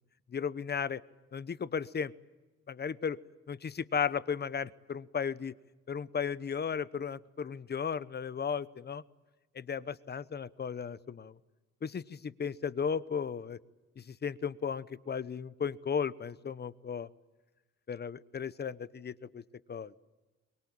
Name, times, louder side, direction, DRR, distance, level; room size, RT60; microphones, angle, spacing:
voice 1, 0.3-1.0 1.3-2.1 2.7-3.2 3.5-5.5 5.9-9.0 9.5-11.4 11.8-13.6 14.0-17.1 17.9-19.4 19.7-19.9, left 6 dB, 35° left, 16 dB, 0.9 m, -35 dB
24.0 x 22.0 x 8.7 m, 1.2 s
cardioid pair, 90°, 30 cm